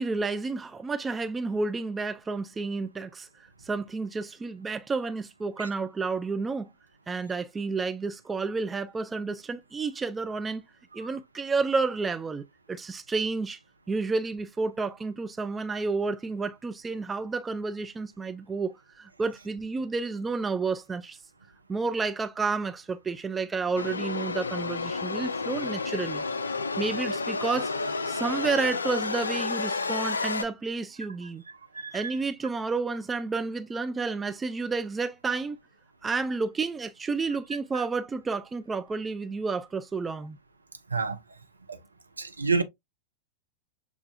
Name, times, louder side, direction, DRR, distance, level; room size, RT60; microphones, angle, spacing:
voice 1, 0.0-3.3 3.6-6.7 7.1-10.6 10.9-13.6 13.9-21.2 21.7-26.2 26.8-27.7 28.1-31.4 31.9-35.6 36.0-40.4, right 4 dB, 15° right, 0.4 m, -30 dB
sound 1, 23.8-30.5, left 4 dB, 75° left, 0.3 m, -31 dB
voice 2, 42.2-42.6, right 4 dB, 80° right, 0.5 m, -27 dB
6.5 x 2.4 x 2.6 m
figure-of-eight pair, 90°, 0 cm